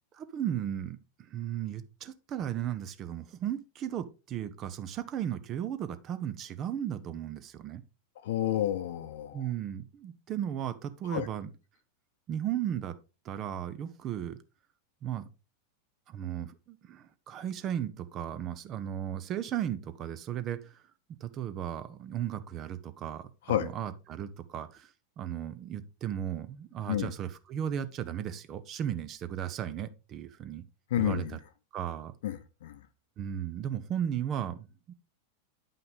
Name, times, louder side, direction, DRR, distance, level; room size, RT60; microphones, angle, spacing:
voice 1, 0.1-7.8 9.3-11.5 12.3-13.0 13.2-14.4 15.0-15.3 16.1-20.8 21.2-30.6 31.0-31.4 31.7-32.1 33.2-34.9, right 10 dB, 30° right, 0.8 m, -35 dB
voice 2, 8.2-9.5 11.1-11.3 23.5-23.7 26.9-27.1 30.9-31.4 32.2-32.8, left 12 dB, 55° left, 0.9 m, -30 dB
9.3 x 5.7 x 3.5 m
figure-of-eight pair, 90°, 0 cm